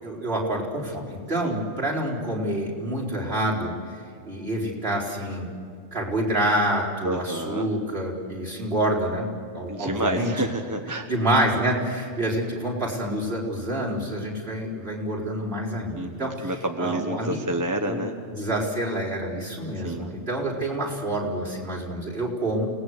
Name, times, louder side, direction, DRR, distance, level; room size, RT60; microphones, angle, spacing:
voice 1, 0.0-5.5 5.9-9.2 9.5-10.3 11.1-16.5 16.8-17.4 17.9-18.0 18.3-22.7, right 1 dB, 45° right, -5 dB, 4.9 m, -27 dB
voice 2, 7.0-7.7 9.7-11.1 15.9-18.1 19.8-20.1, right 1 dB, 15° right, 4 dB, 1.2 m, -29 dB
30.0 x 19.0 x 8.1 m, 2.4 s
omnidirectional pair, 1.3 m